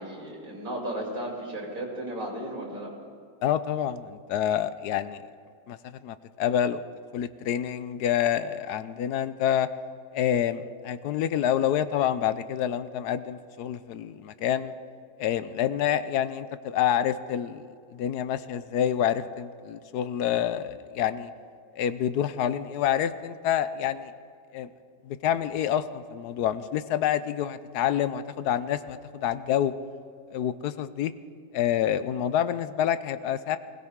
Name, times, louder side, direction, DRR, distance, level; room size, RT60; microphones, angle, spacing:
voice 1, 0.0-2.9, right 1 dB, 55° right, -2 dB, 3.5 m, -34 dB
voice 2, 3.4-5.2 5.7-6.8 7.1-9.7 10.1-14.7 15.2-17.6 17.9-21.3 21.7-24.1 24.5-24.7 25.0-29.7 30.3-31.1 31.5-33.6, left 10 dB, 75° left, 14 dB, 1.1 m, -27 dB
20.5 x 17.0 x 3.6 m, 2.3 s
omnidirectional pair, 1.8 m